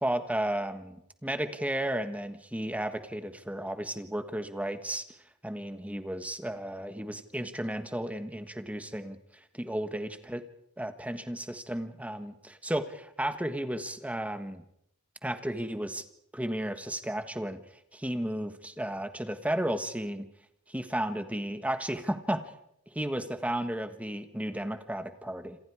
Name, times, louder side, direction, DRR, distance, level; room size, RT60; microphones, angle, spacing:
voice 1, 0.0-5.0 5.4-10.4 10.8-14.6 15.2-16.1 16.3-17.6 17.9-20.3 20.7-22.4 22.9-25.6, right 1 dB, 5° right, 9 dB, 1.5 m, -33 dB
27.5 x 26.5 x 4.9 m, 0.76 s
head